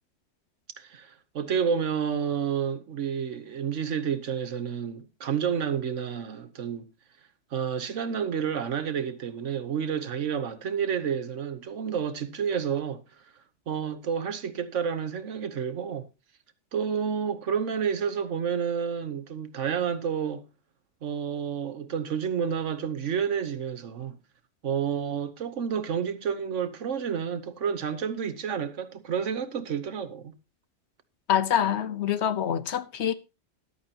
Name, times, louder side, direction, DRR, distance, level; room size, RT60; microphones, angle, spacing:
voice 1, 0.8-6.8 7.5-13.0 13.7-16.1 16.7-20.4 21.0-24.2 24.6-30.3, right 7 dB, 80° right, 1.4 m, -30 dB
voice 2, 31.3-33.1, left 9 dB, 65° left, 1.1 m, -25 dB
14.0 x 11.5 x 2.8 m
omnidirectional pair, 1.2 m